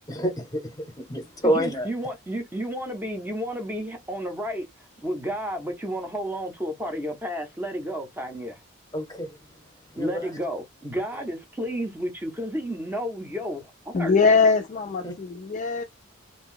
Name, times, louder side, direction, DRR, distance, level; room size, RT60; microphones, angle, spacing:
voice 1, 0.1-1.9 8.9-9.4 9.9-10.3 15.0-15.1, right 1 dB, 15° left, 0.9 m, -28 dB
voice 2, 1.4-4.7 5.0-8.6 10.0-14.1, equal, 10° right, 0.6 m, -31 dB
voice 3, 13.9-15.8, left 4 dB, 35° left, 0.3 m, -21 dB
2.5 x 2.2 x 3.7 m
head